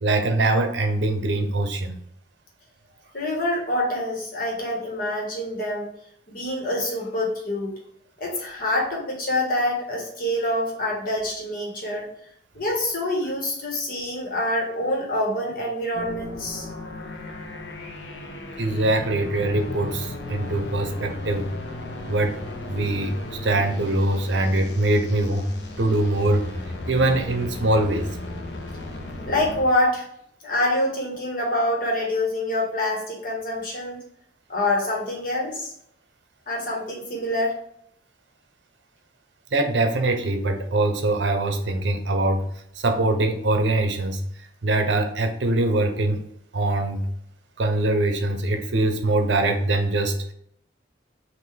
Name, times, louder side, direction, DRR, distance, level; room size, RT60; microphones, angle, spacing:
voice 1, 0.0-2.0 18.6-21.5 22.1-22.4 22.7-25.5 25.8-26.5 26.9-28.1 39.5-42.4 42.8-44.2 44.6-46.2 46.5-47.0 47.6-50.3, right 2 dB, 75° right, 6 dB, 0.7 m, -23 dB
voice 2, 3.1-5.9 6.3-7.7 8.2-12.1 12.5-16.7 29.3-30.0 30.4-34.0 34.5-35.7 36.5-37.5, left 1 dB, 45° left, -2 dB, 1.4 m, -26 dB
sound 1, 15.9-29.6, left 2 dB, 70° left, 0.8 m, -35 dB
5.8 x 2.6 x 3.3 m, 0.69 s
head